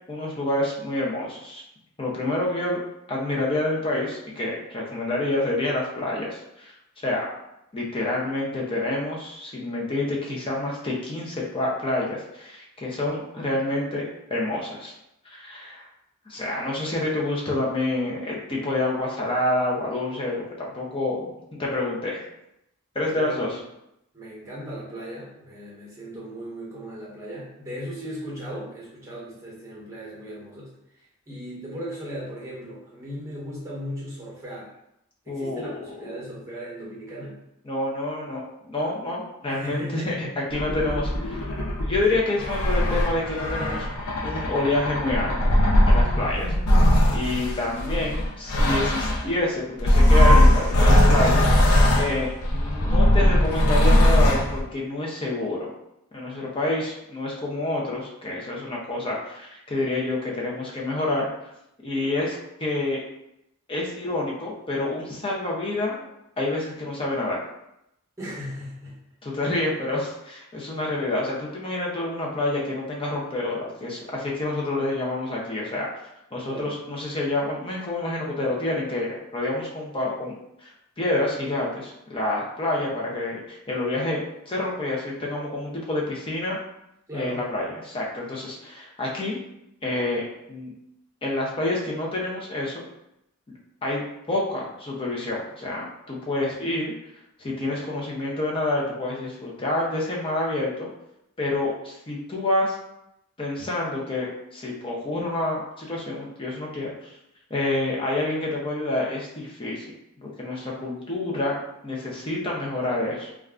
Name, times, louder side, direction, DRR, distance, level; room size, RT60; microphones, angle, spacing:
voice 1, 0.1-1.6 2.0-2.8 3.1-6.7 7.0-7.3 7.7-14.0 14.3-14.9 15.3-15.9 16.3-21.3 21.6-22.2 22.9-23.5 35.3-35.7 37.7-41.5 41.8-43.9 44.2-45.4 45.9-46.5 47.1-55.7 56.1-61.3 61.8-63.0 63.7-66.1 66.4-67.4 69.2-75.9 76.3-80.3 80.6-80.7 81.0-86.6 87.1-89.4 89.8-90.2 90.5-90.7 91.2-92.8 93.8-94.0 94.3-96.9 97.4-100.9 101.4-102.8 103.4-107.1 107.5-109.8 110.2-111.6 111.8-113.3, left 2 dB, 25° left, -3 dB, 0.5 m, -28 dB
voice 2, 23.0-23.5 24.1-34.7 35.2-37.4 39.5-40.3 46.1-46.7 68.2-69.0 76.4-76.7 87.1-87.5, equal, 15° right, -6 dB, 0.9 m, -37 dB
sound 1, 40.5-49.3 49.8-54.6, left 1 dB, 90° left, 0.5 m, -20 dB
2.3 x 2.1 x 3.6 m, 0.82 s
head